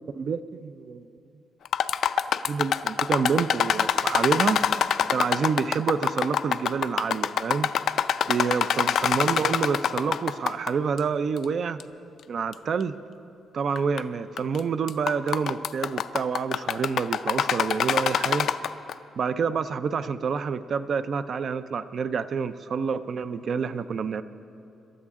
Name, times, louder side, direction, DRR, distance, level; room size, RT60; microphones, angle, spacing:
voice 1, 0.1-1.1 2.5-4.6 5.1-7.7 8.3-11.8 12.3-12.9 13.5-18.5 19.2-24.2, right 6 dB, 45° right, 13 dB, 0.4 m, -28 dB
sound 1, 1.6-10.7 11.0-11.1 11.8-11.9 12.5-12.6 13.8-14.0 14.4-14.6 14.9-18.9, left 8 dB, 65° left, 0.4 m, -25 dB
26.5 x 13.0 x 3.7 m, 2.7 s
cardioid pair, 150°, 0 cm